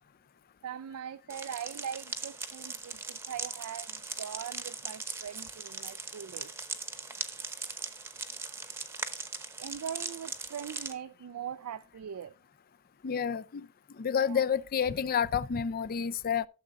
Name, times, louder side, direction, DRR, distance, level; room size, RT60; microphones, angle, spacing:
voice 1, 0.6-6.5 9.6-12.3 14.2-14.4, right 8 dB, 80° right, 0.4 m, -41 dB
sound 1, 1.3-10.9, right 4 dB, 10° right, 0.8 m, -40 dB
voice 2, 13.0-13.7 14.0-16.5, left 7 dB, 40° left, 0.4 m, -29 dB
13.0 x 7.4 x 2.4 m
head